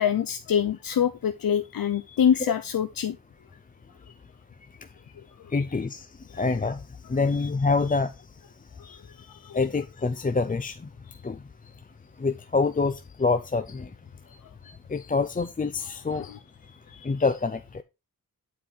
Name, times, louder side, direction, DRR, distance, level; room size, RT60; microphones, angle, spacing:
voice 1, 0.0-3.2 8.8-9.0 9.3-9.6 16.9-17.0, left 8 dB, 70° left, 0.6 m, -25 dB
voice 2, 5.5-6.1 6.4-6.8 7.1-8.1 9.5-10.8 11.2-11.4 12.2-13.9 14.6-16.3 17.0-17.8, left 4 dB, 25° left, 0.5 m, -26 dB
10.0 x 4.7 x 3.7 m
wide cardioid pair, 105°, 36 cm